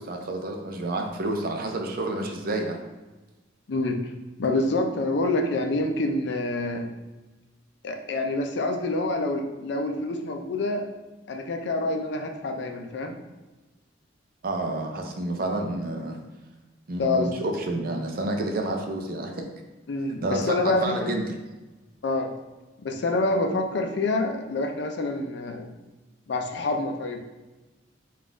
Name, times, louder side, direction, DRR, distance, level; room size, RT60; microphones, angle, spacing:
voice 1, 0.0-2.8 14.4-16.2 16.9-19.5 20.2-21.2, right 2 dB, 50° right, 3 dB, 0.5 m, -29 dB
voice 2, 4.4-6.9 7.8-10.8 11.3-13.2 17.0-17.3 19.9-21.1 22.0-22.3 22.8-25.7 26.3-27.2, left 2 dB, 65° left, 4 dB, 0.4 m, -27 dB
3.9 x 2.4 x 3.7 m, 1.2 s
head